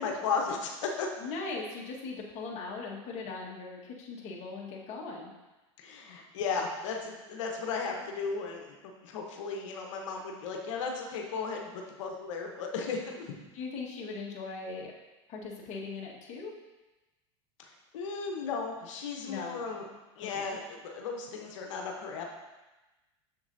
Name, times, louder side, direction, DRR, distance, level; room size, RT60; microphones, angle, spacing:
voice 1, 0.0-1.1 5.8-8.7 9.0-13.3 17.6-19.8 20.2-22.2, left 5 dB, 80° left, 1 dB, 1.1 m, -35 dB
voice 2, 1.2-5.3 13.5-14.9 15.3-16.5 19.3-19.6 20.3-20.4, left 4 dB, 45° left, -2 dB, 1.6 m, -39 dB
7.0 x 6.8 x 2.7 m, 1.1 s
hypercardioid pair, 105°, 16 cm